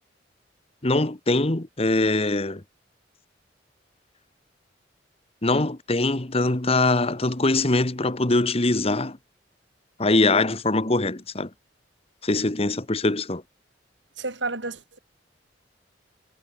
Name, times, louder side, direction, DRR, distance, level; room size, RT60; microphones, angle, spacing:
voice 1, 0.8-2.6 5.4-9.2 10.0-11.5 12.2-13.4, left 2 dB, 35° left, 1.4 m, -22 dB
voice 2, 14.2-15.0, right 3 dB, 90° right, 6.4 m, -31 dB
head